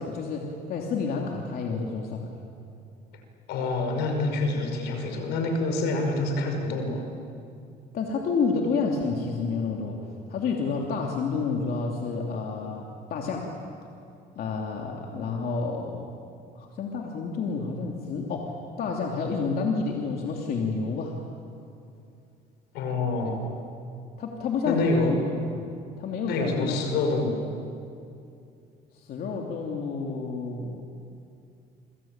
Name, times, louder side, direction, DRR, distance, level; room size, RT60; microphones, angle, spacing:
voice 1, 0.0-2.2 7.9-10.0 10.3-13.5 14.3-16.1 16.5-21.1 23.2-23.3 24.2-25.2 25.6-25.7 26.0-26.8 28.9-30.8, left 4 dB, 60° left, 0 dB, 3.0 m, -29 dB
voice 2, 3.5-7.1 22.7-23.4 24.6-25.2 26.3-27.4, left 2 dB, 85° left, 4 dB, 5.5 m, -27 dB
28.5 x 22.5 x 9.0 m, 2.5 s
cardioid pair, 110°, 17 cm